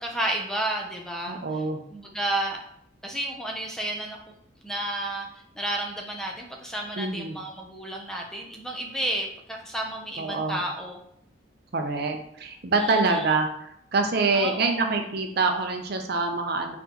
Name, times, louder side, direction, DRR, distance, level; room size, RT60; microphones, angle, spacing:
voice 1, 0.0-1.4 1.9-2.6 3.0-4.2 4.6-5.3 5.6-11.0 12.8-13.2 14.3-14.8, right 1 dB, 5° left, 0 dB, 0.5 m, -31 dB
voice 2, 1.3-1.8 7.0-7.4 10.2-10.6 11.7-16.8, right 3 dB, 55° right, 4 dB, 0.5 m, -26 dB
4.2 x 3.9 x 2.9 m, 0.70 s
head